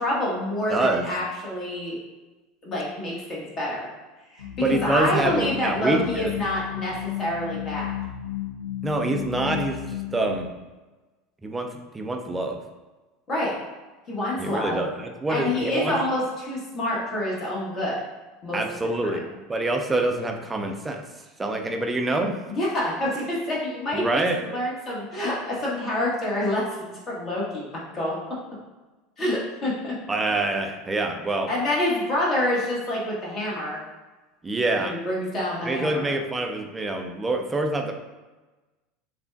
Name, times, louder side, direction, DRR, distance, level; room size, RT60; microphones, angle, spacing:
voice 1, 0.0-2.0 2.6-3.9 4.3-7.9 13.3-13.5 14.1-14.8 15.3-18.0 18.4-18.6 19.0-19.2 22.5-28.2 29.2-30.0 31.5-33.8 34.8-36.1, left 1 dB, 35° left, -5 dB, 1.4 m, -27 dB
voice 2, 0.7-1.1 4.6-6.3 8.8-10.5 11.4-11.7 11.9-12.6 14.4-15.9 18.5-19.2 19.5-21.0 21.4-22.4 23.9-24.4 30.1-31.5 34.4-35.0 35.7-37.9, right 2 dB, 15° right, 3 dB, 0.5 m, -26 dB
sound 1, 4.4-10.4, left 13 dB, 70° left, 0.5 m, -33 dB
6.7 x 2.4 x 2.4 m, 1.2 s
figure-of-eight pair, 75°, 0 cm